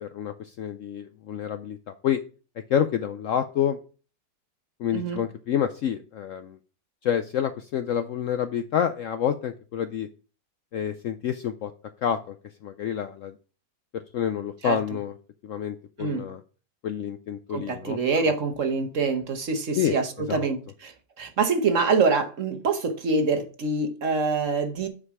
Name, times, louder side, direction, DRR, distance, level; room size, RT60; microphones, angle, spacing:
voice 1, 0.0-2.2 2.7-3.8 4.8-6.6 7.0-10.1 10.7-11.7 12.0-12.4 12.6-13.3 13.9-15.2 15.4-16.4 16.8-18.0 18.3-18.4 19.8-20.4, left 9 dB, 70° left, 0.7 m, -28 dB
voice 2, 4.9-5.2 14.6-14.8 16.0-16.3 17.5-24.9, right 4 dB, 55° right, 1.2 m, -25 dB
8.7 x 4.8 x 4.7 m
omnidirectional pair, 1.8 m